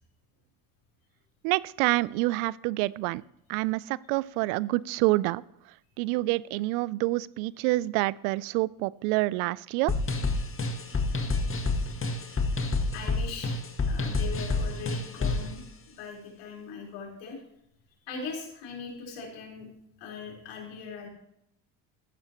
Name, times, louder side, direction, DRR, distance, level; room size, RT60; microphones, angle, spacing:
voice 1, 1.4-3.2 3.5-5.4 6.0-9.9, right 20 dB, 85° right, 22 dB, 0.5 m, -27 dB
sound 1, 9.9-15.5, left 3 dB, 30° left, 1.8 m, -28 dB
voice 2, 12.9-13.5 13.8-15.6 16.0-17.4 18.1-19.7 20.0-21.1, left 5 dB, 75° left, -1 dB, 4.4 m, -40 dB
14.5 x 11.0 x 3.0 m, 0.76 s
supercardioid pair, 70°, 43 cm